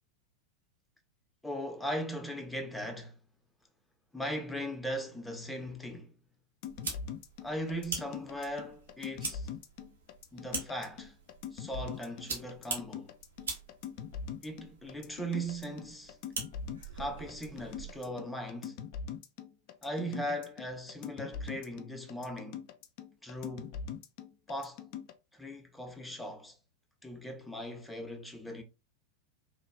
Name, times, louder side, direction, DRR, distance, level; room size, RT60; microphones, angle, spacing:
voice 1, 1.4-3.2 4.1-6.1 7.4-9.5 10.3-11.1 11.5-13.1 14.4-16.2 16.9-18.8 19.8-22.7 23.2-23.8 24.5-24.8 25.3-26.6 27.0-28.6, equal, 5° left, 0.6 m, -39 dB
sound 1, 6.6-25.1, left 7 dB, 45° left, 0.3 m, -42 dB
sound 2, 6.7-18.1, right 4 dB, 70° right, 0.9 m, -44 dB
3.0 x 2.3 x 2.2 m
figure-of-eight pair, 90°, 0 cm